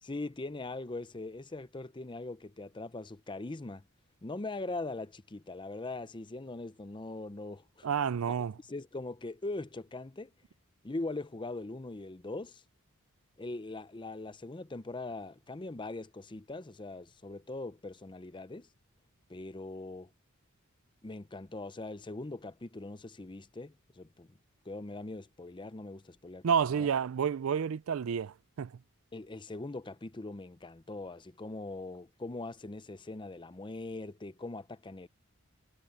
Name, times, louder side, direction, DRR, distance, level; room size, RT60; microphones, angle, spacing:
voice 1, 0.0-3.8 4.2-7.9 8.3-8.4 8.7-10.3 10.8-12.6 13.4-18.7 19.3-20.1 21.0-24.3 24.7-26.9 29.1-35.1, left 2 dB, 20° left, 0.6 m, -41 dB
voice 2, 7.8-8.6 26.4-28.7, right 7 dB, 75° right, 0.4 m, -30 dB
head